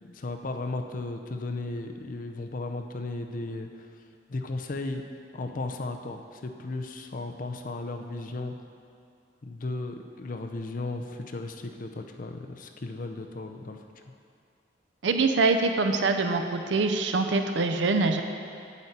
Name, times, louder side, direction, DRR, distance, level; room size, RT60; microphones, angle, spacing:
voice 1, 0.0-3.9 4.3-5.0 5.3-8.5 9.4-13.8, left 2 dB, 50° left, 5 dB, 0.6 m, -35 dB
voice 2, 15.0-18.2, right 3 dB, 80° right, 6 dB, 0.6 m, -24 dB
8.2 x 8.1 x 4.3 m, 2.4 s
head